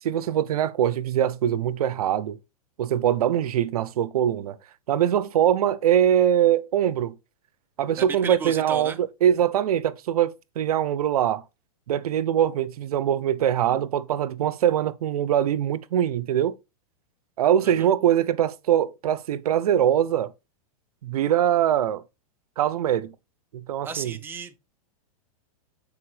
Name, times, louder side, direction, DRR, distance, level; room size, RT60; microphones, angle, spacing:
voice 1, 0.0-2.4 2.8-4.6 4.9-7.2 7.8-11.4 11.9-16.5 17.4-20.3 21.0-22.0 22.6-23.1 23.5-24.2, right 10 dB, 85° right, 0.6 m, -23 dB
voice 2, 8.0-9.0 17.6-17.9 23.8-24.6, right 6 dB, 10° right, 0.6 m, -34 dB
8.7 x 4.0 x 3.2 m
hypercardioid pair, 140°, 19 cm